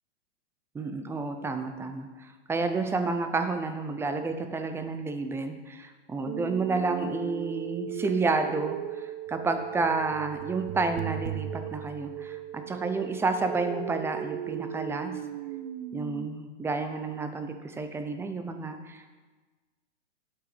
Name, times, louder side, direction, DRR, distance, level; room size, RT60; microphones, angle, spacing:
voice 1, 0.7-15.2 15.9-19.1, right 3 dB, 5° right, 7 dB, 0.5 m, -30 dB
sound 1, 6.3-16.3, right 11 dB, 50° right, 0.6 m, -37 dB
8.0 x 5.9 x 7.6 m, 1.3 s
hypercardioid pair, 130°, 34 cm